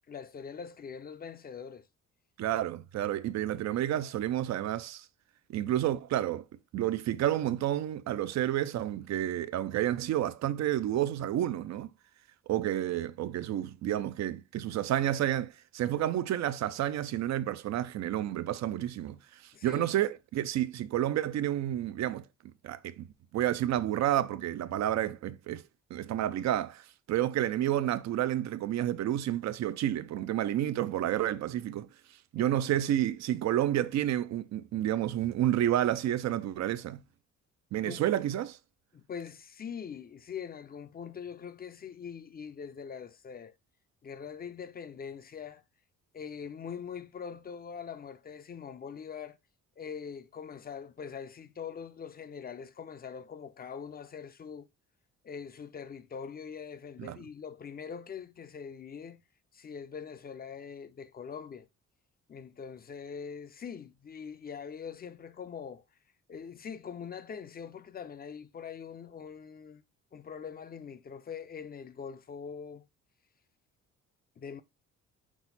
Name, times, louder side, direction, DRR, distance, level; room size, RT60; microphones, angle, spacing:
voice 1, 0.1-1.9 19.5-19.9 32.3-32.8 37.8-38.0 38.9-43.6 44.0-45.6 46.1-49.4 49.8-54.7 55.2-59.2 59.5-61.7 62.3-65.8 66.3-69.8 70.1-72.9 74.4-74.6, left 7 dB, 30° left, 0.5 m, -43 dB
voice 2, 2.4-5.0 5.5-6.5 6.7-11.9 12.5-19.2 19.6-22.2 22.6-23.1 23.3-25.6 25.9-26.8 27.1-31.9 32.3-37.0 37.7-38.6 57.0-57.2, right 12 dB, 65° right, 0.5 m, -30 dB
6.0 x 2.1 x 4.0 m
cardioid pair, 90°, 30 cm